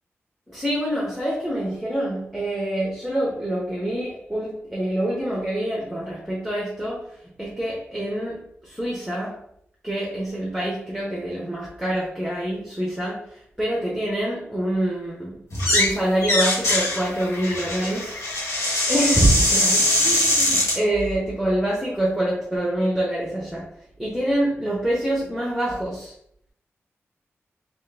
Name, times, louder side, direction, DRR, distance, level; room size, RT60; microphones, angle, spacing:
voice 1, 0.5-9.4 9.8-15.4 15.7-18.5 18.9-23.7 24.0-26.1, right 1 dB, ahead, -5 dB, 0.8 m, -26 dB
sound 1, 15.5-15.9 16.2-20.8, left 1 dB, 85° left, 1.3 m, -22 dB
3.6 x 2.9 x 3.4 m, 0.68 s
wide cardioid pair, 175°, 5 cm